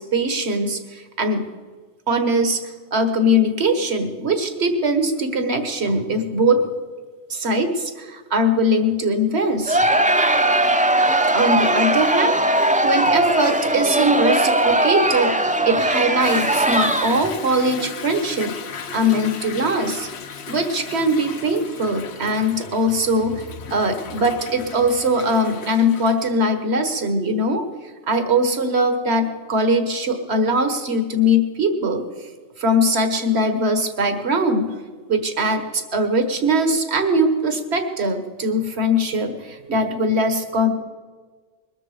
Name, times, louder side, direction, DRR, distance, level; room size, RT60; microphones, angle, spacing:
voice 1, 0.0-1.5 2.1-2.6 2.9-6.6 7.3-9.8 11.3-18.6 18.9-20.1 20.5-23.3 23.7-27.7 28.1-32.0 32.6-34.8 35.1-40.7, equal, 75° right, 8 dB, 1.7 m, -21 dB
Crowd, 9.7-17.4, right 1 dB, 10° right, 0.5 m, -19 dB
Toilet flush / Drip / Trickle dribble, 16.2-26.3, left 6 dB, 75° left, 1.2 m, -36 dB
21.5 x 13.0 x 5.0 m, 1.4 s
omnidirectional pair, 1.1 m